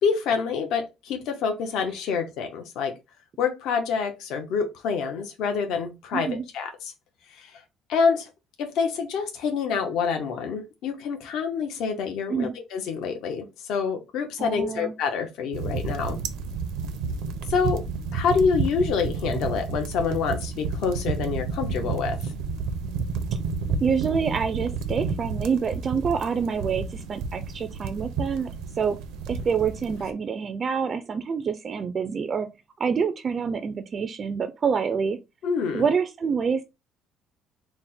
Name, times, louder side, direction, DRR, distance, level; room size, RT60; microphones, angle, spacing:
voice 1, 0.0-2.9 3.4-6.9 7.3-7.6 7.9-8.3 8.6-16.2 17.5-17.9 18.1-22.3 35.4-35.8, left 5 dB, 65° left, 0.7 m, -27 dB
voice 2, 6.1-6.4 12.3-12.5 14.4-14.9 23.8-28.5 28.8-29.0 29.3-32.5 32.8-35.2 35.7-36.6, right 6 dB, 30° right, 0.3 m, -27 dB
sound 1, 15.5-30.1, right 5 dB, 85° right, 0.6 m, -31 dB
4.0 x 2.1 x 4.1 m
cardioid pair, 160°, 0 cm